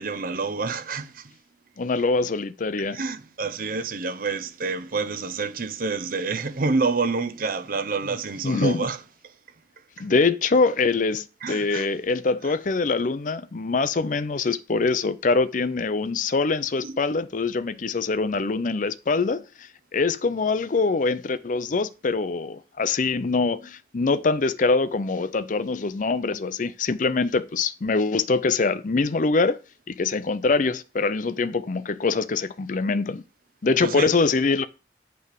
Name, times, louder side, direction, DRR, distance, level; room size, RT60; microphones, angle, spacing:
voice 1, 0.0-1.3 2.9-9.0 10.0-10.1 11.4-11.9 16.8-17.0 33.8-34.1, right 4 dB, 50° right, 0.7 m, -28 dB
voice 2, 1.8-3.0 8.4-8.9 10.0-19.4 19.9-29.6 29.9-33.2 33.6-34.7, left 4 dB, 45° left, 0.5 m, -24 dB
8.9 x 3.4 x 6.6 m
head